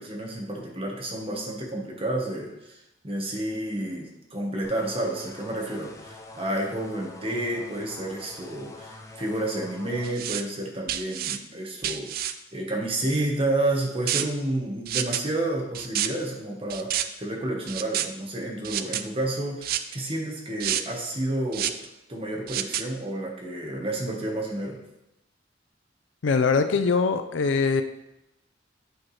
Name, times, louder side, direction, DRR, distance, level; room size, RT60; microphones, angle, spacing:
voice 1, 0.0-21.7 22.1-24.8, right 1 dB, 30° right, -1 dB, 1.2 m, -30 dB
sound 1, 4.6-10.2, left 2 dB, 15° left, 0.5 m, -45 dB
sound 2, 10.0-10.4 10.9-11.4 11.8-12.3 14.1-14.2 14.9-15.2 15.7-16.1 16.7-17.0 17.7-18.1 18.6-19.0 19.6-19.9 20.6-20.8 21.5-21.8 22.5-22.8, right 11 dB, 50° right, 0.3 m, -28 dB
voice 2, 26.2-27.8, left 4 dB, 85° left, 9 dB, 0.5 m, -22 dB
8.4 x 4.4 x 3.2 m, 0.88 s
head